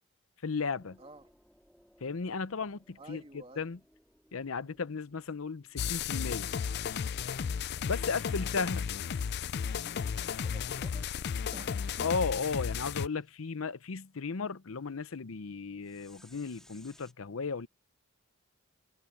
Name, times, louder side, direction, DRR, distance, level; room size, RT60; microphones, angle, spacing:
voice 1, 0.4-1.0 2.0-3.2 3.6-3.8 4.3-6.5 7.8-8.9 12.0-17.7, left 5 dB, 85° left, 0.7 m, -35 dB
sound 1, 0.8-7.2 7.8-13.2 15.8-17.1, left 1 dB, 5° left, 2.2 m, -63 dB
voice 2, 1.0-1.3 3.0-3.6 4.6-4.8 8.2-8.4 9.8-11.1 11.5-12.1, right 1 dB, 30° right, 2.5 m, -52 dB
sound 2, 5.8-13.1, left 7 dB, 55° left, 0.4 m, -34 dB
head